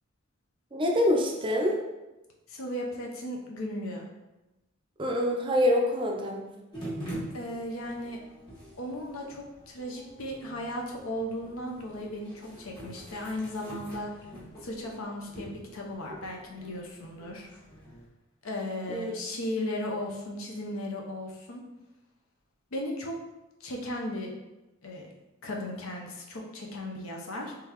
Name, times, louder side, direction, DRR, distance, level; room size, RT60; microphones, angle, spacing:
voice 1, 0.7-1.8 5.0-6.4 18.9-19.1, left 1 dB, 25° right, 1 dB, 0.5 m, -25 dB
voice 2, 2.5-4.1 7.3-8.2 8.8-14.1 14.6-17.5 18.4-21.6 22.7-23.1 23.6-24.3 24.8-25.1 25.4-27.5, left 1 dB, 70° left, 0 dB, 0.7 m, -36 dB
sound 1, 6.7-18.1, right 1 dB, 20° left, 1.3 m, -45 dB
3.8 x 3.3 x 2.9 m, 1.0 s
head